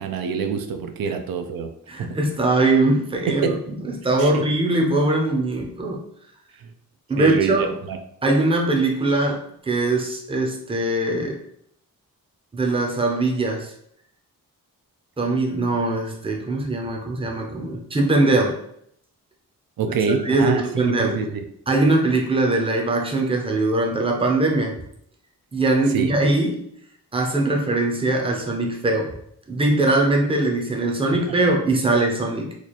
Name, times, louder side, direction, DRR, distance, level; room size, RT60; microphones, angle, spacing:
voice 1, 0.0-1.7 2.0-2.2 3.3-3.6 4.2-4.5 6.5-6.7 7.2-8.0 19.8-21.4 25.9-26.1 31.1-31.4, right 6 dB, 90° right, 7 dB, 0.5 m, -26 dB
voice 2, 1.9-3.4 3.9-6.0 7.1-7.7 8.2-11.4 12.5-13.7 15.2-18.6 20.2-21.2 21.7-24.7 25.5-26.6 27.1-29.1 29.5-32.6, right 2 dB, 15° right, 0 dB, 0.5 m, -21 dB
3.1 x 2.4 x 4.0 m, 0.69 s
wide cardioid pair, 175°, 34 cm